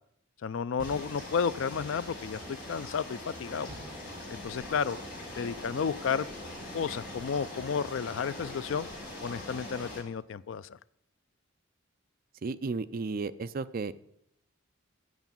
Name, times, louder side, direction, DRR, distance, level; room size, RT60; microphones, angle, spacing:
voice 1, 0.4-3.7 4.3-5.0 5.4-6.3 6.7-8.9 9.2-10.8, left 6 dB, 65° left, 17 dB, 0.4 m, -32 dB
sound 1, 0.8-10.0, left 1 dB, 40° left, 4.8 m, -42 dB
sound 2, 0.8-1.7 3.7-4.6, right 1 dB, 70° right, 3.0 m, -49 dB
sound 3, 3.3-8.4, equal, 15° right, 4.5 m, -57 dB
voice 2, 12.4-13.9, right 4 dB, 40° right, 13 dB, 0.4 m, -33 dB
8.1 x 7.0 x 7.3 m, 0.77 s
head